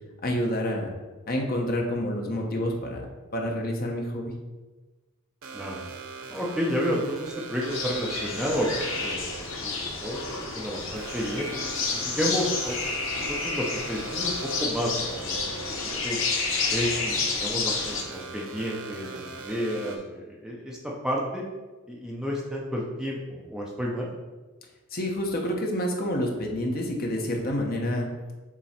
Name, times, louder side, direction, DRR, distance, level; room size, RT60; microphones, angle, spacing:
voice 1, 0.2-0.9 1.3-3.0 3.3-4.3 24.9-28.1, left 1 dB, 45° left, 1 dB, 1.0 m, -28 dB
sound 1, 5.4-20.0, right 3 dB, 90° right, 0.9 m, -41 dB
voice 2, 6.3-11.5 11.9-14.3 14.6-16.2 16.7-21.4 21.9-24.1, equal, 5° right, -3 dB, 0.7 m, -31 dB
sound 2, 7.6-18.0, left 4 dB, 65° left, 1.2 m, -30 dB
7.3 x 3.0 x 4.3 m, 1.2 s
head